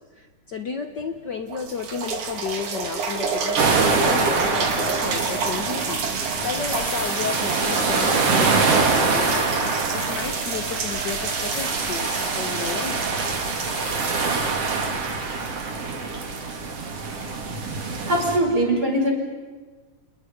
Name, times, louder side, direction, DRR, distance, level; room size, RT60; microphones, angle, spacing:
voice 1, 0.0-9.7 10.1-13.1, left 5 dB, 75° left, 7 dB, 0.9 m, -33 dB
sound 1, 1.0-1.1 1.5-17.2 17.9-18.0, right 5 dB, 70° right, 3.9 m, -30 dB
sound 2, 3.6-18.4, right 4 dB, 50° right, 3.4 m, -25 dB
sound 3, 4.7-14.5, left 3 dB, 25° left, 2.5 m, -39 dB
voice 2, 18.1-19.1, right 1 dB, 30° right, 1 dB, 5.8 m, -21 dB
30.0 x 29.0 x 5.4 m, 1.4 s
omnidirectional pair, 3.7 m